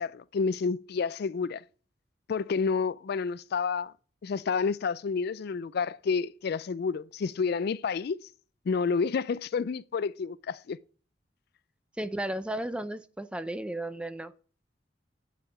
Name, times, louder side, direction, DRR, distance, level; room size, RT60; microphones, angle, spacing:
voice 1, 0.0-1.6 2.3-3.9 4.2-8.2 8.7-10.8, left 5 dB, 60° left, 0.4 m, -29 dB
voice 2, 12.0-14.3, right 1 dB, 5° right, 0.6 m, -34 dB
9.4 x 5.8 x 6.0 m
head